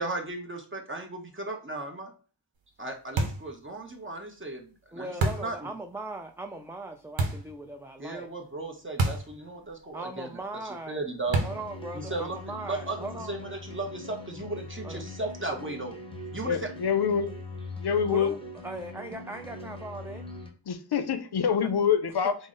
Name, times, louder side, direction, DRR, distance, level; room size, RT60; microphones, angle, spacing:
voice 1, 0.0-2.1 2.8-5.7 8.0-10.3 10.9-11.4 11.9-16.0 16.3-16.7, right 2 dB, 25° right, 2 dB, 0.9 m, -36 dB
sound 1, 3.2-3.5 5.2-5.6 7.2-7.5 9.0-9.3 9.6-9.7 11.3-11.7, right 2 dB, 90° right, 0.8 m, -28 dB
voice 2, 4.9-8.3 9.9-11.0 11.4-13.3 14.8-15.0 18.1-18.4 18.6-20.2, right 2 dB, 5° right, 4 dB, 0.3 m, -39 dB
sound 2, 11.3-20.5, left 2 dB, 10° left, 0.9 m, -42 dB
voice 3, 16.3-17.3 17.8-18.3 20.7-22.3, left 7 dB, 60° left, 9 dB, 0.6 m, -26 dB
3.7 x 2.0 x 3.7 m, 0.38 s
cardioid pair, 50°, 44 cm